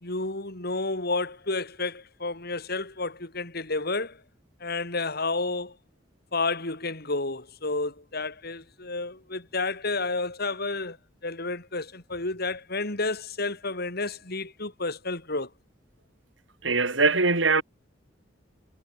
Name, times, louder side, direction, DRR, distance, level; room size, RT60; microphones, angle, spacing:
voice 1, 0.0-4.2 4.6-5.7 6.3-11.0 11.2-15.5, left 3 dB, 60° left, 4.6 m, -31 dB
voice 2, 16.6-17.6, right 3 dB, 80° right, 4.6 m, -22 dB
head